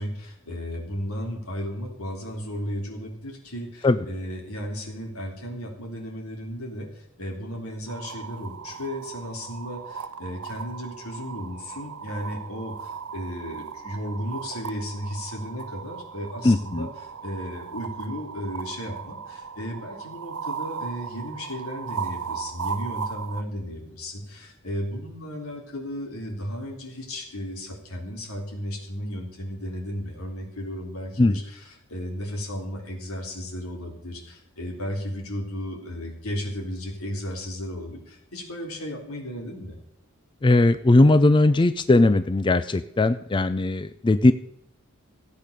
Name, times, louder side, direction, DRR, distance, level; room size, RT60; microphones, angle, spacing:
voice 1, 0.0-39.8, equal, 85° left, 2 dB, 3.5 m, -34 dB
sound 1, 7.9-23.4, right 6 dB, 85° right, 0.7 m, -37 dB
voice 2, 16.4-16.9 31.2-31.4 40.4-44.3, left 2 dB, 20° left, 12 dB, 0.4 m, -19 dB
15.5 x 8.5 x 6.7 m, 0.78 s
head